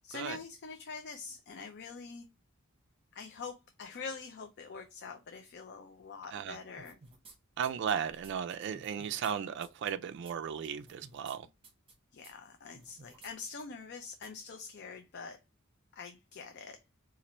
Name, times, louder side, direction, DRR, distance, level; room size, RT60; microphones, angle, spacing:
voice 1, 0.0-2.3 3.1-7.0 12.1-15.4 15.9-16.8, left 4 dB, 55° left, 0.5 m, -45 dB
sound 1, 6.8-7.3 7.6-9.3 9.6-9.9 10.2-10.3 10.6-11.4 11.6-11.9 12.2-12.3 12.7-13.3 13.6-13.7 14.2-14.3, right 3 dB, 25° right, 1.0 m, -55 dB
voice 2, 7.6-11.5, right 8 dB, 60° right, 0.3 m, -35 dB
4.2 x 2.5 x 3.0 m
head